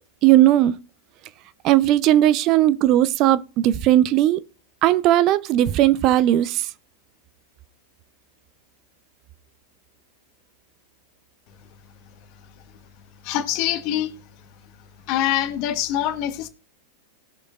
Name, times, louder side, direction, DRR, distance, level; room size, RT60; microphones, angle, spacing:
voice 1, 0.2-0.7 1.6-4.4 4.8-6.7, right 13 dB, 40° right, 0.6 m, -17 dB
voice 2, 13.2-14.1 15.1-16.5, left 12 dB, 45° left, 1.2 m, -24 dB
19.0 x 6.4 x 2.5 m
figure-of-eight pair, 90°, 0 cm